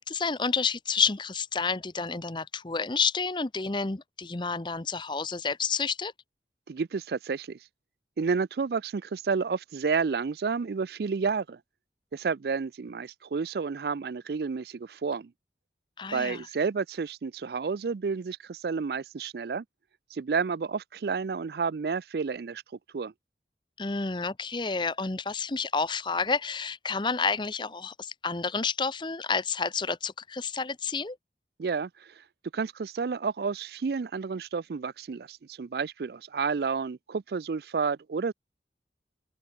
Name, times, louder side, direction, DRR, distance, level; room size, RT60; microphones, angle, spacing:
voice 1, 0.1-6.1 16.0-16.5 23.8-31.2, left 5 dB, 25° left, 0.8 m, -30 dB
voice 2, 6.7-7.6 8.2-11.6 12.1-15.3 16.1-19.6 20.1-22.6 22.9-23.1 31.6-32.1 32.5-38.3, right 5 dB, 60° right, 0.4 m, -30 dB
open air
head